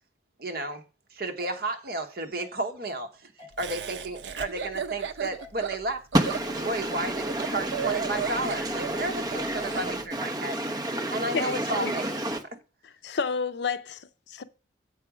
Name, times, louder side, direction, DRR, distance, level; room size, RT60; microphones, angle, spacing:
voice 1, 0.4-0.8 1.1-3.3 3.6-6.0 6.7-10.6 11.1-12.2, right 2 dB, 55° right, 1.1 m, -32 dB
sound 1, 1.4-1.5 2.4-2.5 3.4-3.6 4.4-4.5 5.4-5.6 6.4-6.5 7.4-7.6 8.4-8.5 9.4-9.6, left 4 dB, 30° left, 2.7 m, -46 dB
Laughter, 3.6-9.9, right 7 dB, 75° right, 0.6 m, -35 dB
voice 2, 6.1-12.4, right 1 dB, 20° right, 1.0 m, -30 dB
voice 3, 11.3-11.9 13.0-14.4, left 5 dB, 70° left, 0.5 m, -31 dB
7.6 x 4.8 x 6.1 m
head